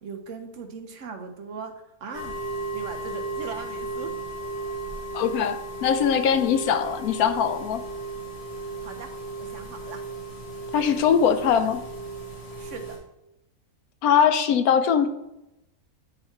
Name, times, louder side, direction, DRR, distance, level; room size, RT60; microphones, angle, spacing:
voice 1, 0.0-1.7 2.0-2.4 2.7-4.1 8.8-9.1 9.4-10.0 12.6-13.0, right 5 dB, 65° right, 6 dB, 0.9 m, -39 dB
sound 1, 2.1-13.0, right 3 dB, 45° left, 2.2 m, -35 dB
voice 2, 5.1-7.8 10.7-11.8 14.0-15.1, left 7 dB, 80° left, 9 dB, 1.1 m, -21 dB
8.9 x 3.0 x 4.3 m, 0.92 s
omnidirectional pair, 1.5 m